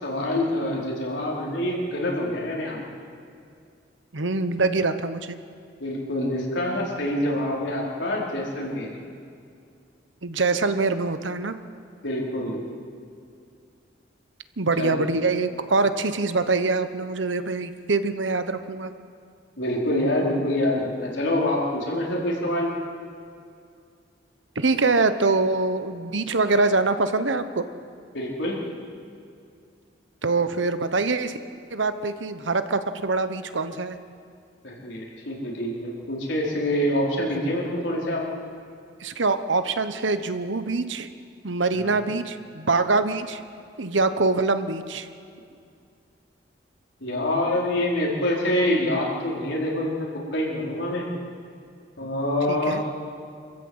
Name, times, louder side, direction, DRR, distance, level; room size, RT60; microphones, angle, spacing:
voice 1, 0.0-2.8 5.8-8.9 12.0-12.6 14.8-15.0 19.6-22.7 28.1-28.6 34.6-38.3 41.7-42.0 47.0-51.1 52.0-52.8, left 1 dB, 75° left, -3 dB, 4.6 m, -26 dB
voice 2, 4.1-5.4 10.2-11.6 14.6-18.9 24.5-27.6 30.2-31.4 31.7-34.0 39.0-41.1 41.4-43.4 43.8-45.1 52.5-52.8, right 3 dB, 85° right, 10 dB, 1.1 m, -24 dB
26.5 x 14.0 x 8.1 m, 2.4 s
head